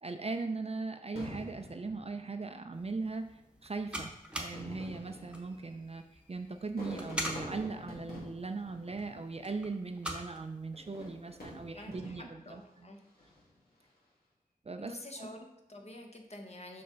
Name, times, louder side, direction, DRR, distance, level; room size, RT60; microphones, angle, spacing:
voice 1, 0.0-3.3 3.6-4.1 4.4-6.0 6.3-12.9 14.7-15.3, right 3 dB, 40° right, 6 dB, 0.4 m, -39 dB
Fireworks, 1.2-2.8 3.6-3.7 4.4-9.7 10.7-12.5 13.1-13.6, left 1 dB, 80° left, 2.1 m, -47 dB
sound 1, 2.7-11.9, equal, 5° right, 1.0 m, -45 dB
voice 2, 11.7-13.0 14.8-16.8, left 1 dB, 45° left, 3 dB, 1.1 m, -48 dB
5.7 x 5.4 x 3.9 m, 0.83 s
wide cardioid pair, 70°, 16 cm